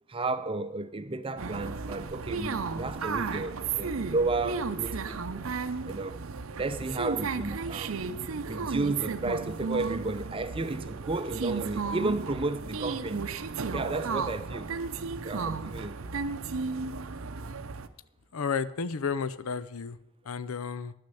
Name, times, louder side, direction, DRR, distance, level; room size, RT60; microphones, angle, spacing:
voice 1, 0.1-5.4 5.9-6.2 6.6-8.0 8.5-13.3 13.7-14.7 15.2-16.0, right 2 dB, 25° right, 0.6 m, -32 dB
sound 1, 1.4-17.9, right 4 dB, 70° right, 0.6 m, -34 dB
voice 2, 18.3-20.0 20.2-20.9, left 5 dB, 80° left, 0.6 m, -32 dB
11.5 x 6.5 x 8.4 m
head